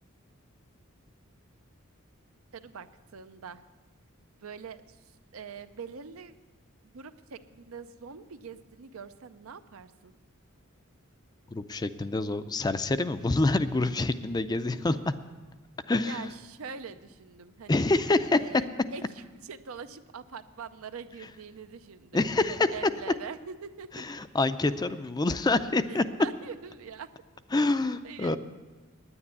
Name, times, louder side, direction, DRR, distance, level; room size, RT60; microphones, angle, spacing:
voice 1, 2.5-2.9 3.1-3.6 4.4-6.4 6.9-10.1 16.1-17.8 18.3-19.0 19.5-22.2 22.7-24.1 25.9-27.1 28.0-28.4, right 6 dB, 80° right, 11 dB, 0.6 m, -43 dB
voice 2, 11.5-15.1 15.9-16.3 17.7-18.4 22.1-22.9 23.9-26.0 27.5-28.4, left 2 dB, 20° left, 12 dB, 0.4 m, -26 dB
9.9 x 9.6 x 8.2 m, 1.3 s
head